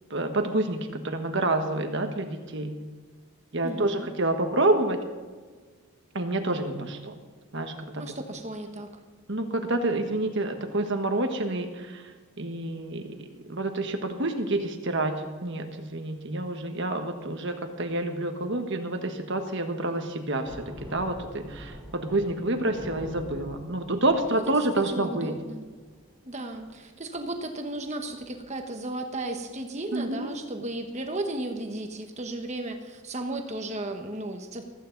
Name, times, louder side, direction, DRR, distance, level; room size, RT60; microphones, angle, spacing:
voice 1, 0.1-2.7 3.5-5.0 6.1-7.2 7.5-8.0 9.3-12.0 12.4-25.3 29.9-30.4, right 2 dB, 55° right, 6 dB, 1.4 m, -28 dB
voice 2, 3.6-4.1 8.0-8.9 24.2-25.6 26.2-34.6, right 1 dB, 30° right, 5 dB, 1.3 m, -35 dB
sound 1, 20.4-26.2 26.5-26.7 27.1-27.4 27.7-27.8 28.0-28.7, equal, ahead, 3.3 m, -45 dB
16.0 x 14.5 x 4.0 m, 1.4 s
head